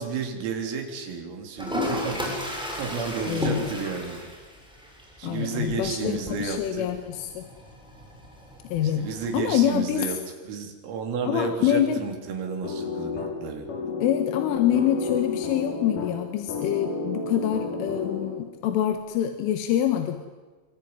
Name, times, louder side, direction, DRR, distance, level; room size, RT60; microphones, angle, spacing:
voice 1, 0.0-4.2 5.2-6.9 8.8-13.7, right 5 dB, 85° right, 3 dB, 6.2 m, -32 dB
Toilet flush, 1.6-9.6, left 1 dB, ahead, 7.1 m, -35 dB
voice 2, 3.3-3.6 5.2-7.4 8.7-9.0 9.3-10.1 11.3-12.0 14.0-20.3, left 10 dB, 75° left, 6 dB, 3.9 m, -25 dB
sound 1, 12.6-18.6, left 4 dB, 45° left, 4.8 m, -32 dB
25.0 x 24.5 x 9.7 m, 1.3 s
omnidirectional pair, 5.9 m